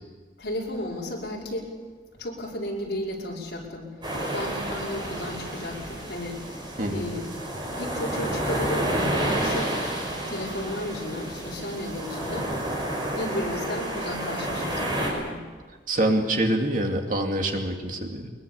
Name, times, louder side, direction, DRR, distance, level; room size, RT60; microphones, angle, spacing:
voice 1, 0.4-1.7 2.2-3.9 4.3-6.4 6.9-7.2 7.7-9.7 10.3-12.5 13.1-15.4, left 1 dB, 65° left, -3 dB, 5.3 m, -33 dB
sound 1, 4.0-15.1, right 1 dB, 25° right, 5.9 m, -30 dB
voice 2, 6.8-7.1 15.9-18.3, right 1 dB, 45° right, 3 dB, 2.5 m, -25 dB
22.5 x 21.5 x 7.2 m, 1.4 s
head